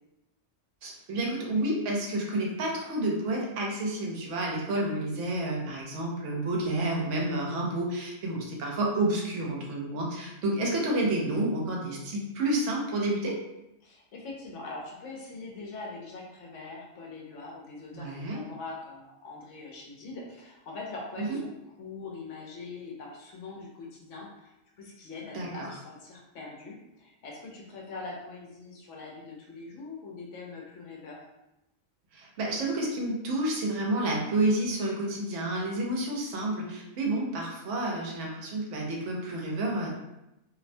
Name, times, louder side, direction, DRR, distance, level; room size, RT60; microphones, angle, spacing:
voice 1, 0.8-13.4 17.9-18.4 21.2-21.4 25.3-25.7 32.1-39.9, right 1 dB, 75° right, -1 dB, 1.0 m, -30 dB
voice 2, 13.8-21.5 21.8-31.2, left 3 dB, 75° left, -2 dB, 0.9 m, -43 dB
2.6 x 2.1 x 2.5 m, 0.91 s
omnidirectional pair, 1.3 m